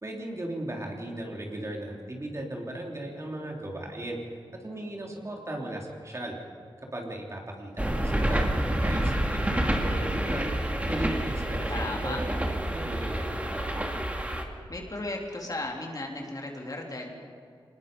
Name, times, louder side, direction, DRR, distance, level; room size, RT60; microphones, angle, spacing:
voice 1, 0.0-4.2 4.6-6.4 6.9-8.5 8.8-10.5 10.9-13.6, right 1 dB, 35° right, 0 dB, 3.5 m, -36 dB
sound 1, 7.8-14.4, right 1 dB, 15° right, 2.2 m, -28 dB
voice 2, 11.7-12.2 14.7-17.1, left 2 dB, 45° left, 0 dB, 3.4 m, -35 dB
25.5 x 20.0 x 5.5 m, 2.4 s
wide cardioid pair, 75°, 9 cm